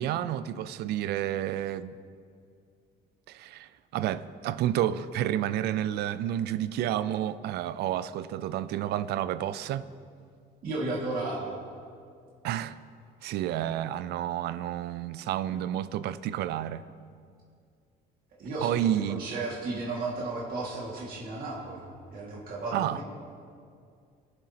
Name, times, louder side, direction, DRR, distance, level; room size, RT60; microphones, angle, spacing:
voice 1, 0.0-2.0 3.3-9.9 12.4-12.8 13.2-16.8 18.6-19.3 22.7-23.0, right 11 dB, 75° right, 0.5 m, -30 dB
voice 2, 10.6-11.6 18.4-18.8 19.1-23.0, right 2 dB, 60° right, 2.1 m, -34 dB
22.5 x 7.5 x 2.9 m
cardioid pair, 110°, 17 cm